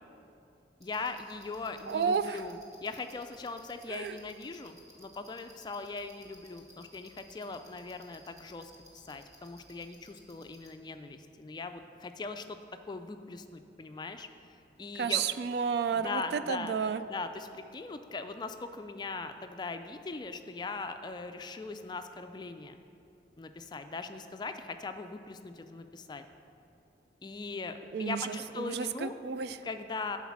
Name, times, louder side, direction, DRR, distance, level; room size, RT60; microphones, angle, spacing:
voice 1, 0.8-8.7 9.1-12.6 12.9-14.3 14.8-15.2 15.9-16.8 17.1-22.8 23.4-26.2 27.2-29.1 29.6-30.2, left 3 dB, 25° left, 8 dB, 0.3 m, -40 dB
sound 1, 0.8-10.7, equal, 20° right, 1.3 m, -59 dB
voice 2, 1.9-2.4 3.9-4.2 15.0-17.0 27.9-29.6, right 6 dB, 65° right, 12 dB, 0.3 m, -31 dB
11.0 x 4.1 x 6.0 m, 2.7 s
head